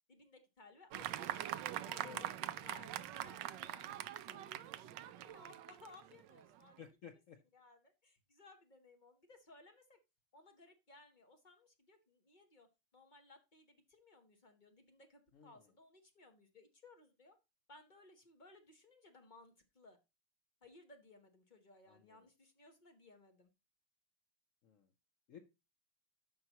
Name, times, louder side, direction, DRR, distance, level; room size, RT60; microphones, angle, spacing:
voice 1, 0.1-1.4 1.7-6.8 7.5-10.0 10.3-17.4 17.7-20.0 20.6-23.5, left 2 dB, 40° left, 5 dB, 0.6 m, -61 dB
Fireworks, 0.9-6.6, right 12 dB, 75° right, 1.1 m, -43 dB
voice 2, 6.8-7.4 15.3-15.7 21.9-22.2 24.6-24.9 25.3-25.4, left 8 dB, 80° left, 7 dB, 0.7 m, -55 dB
13.5 x 5.7 x 2.9 m, 0.26 s
omnidirectional pair, 2.4 m